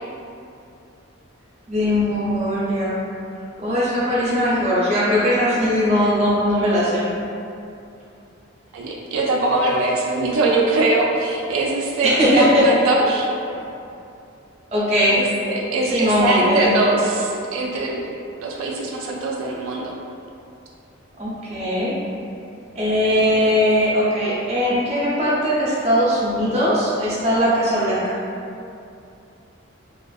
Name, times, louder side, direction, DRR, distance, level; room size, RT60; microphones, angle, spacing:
voice 1, 1.7-3.0 3.6-7.1 12.0-12.7 13.5-13.6 14.7-15.2 15.9-16.7 21.2-22.0 22.7-28.0, equal, 30° right, -8 dB, 0.5 m, -19 dB
voice 2, 8.7-13.3 15.1-18.1 18.4-20.0, right 2 dB, 90° right, -1 dB, 0.3 m, -22 dB
2.4 x 2.4 x 2.3 m, 2.6 s
head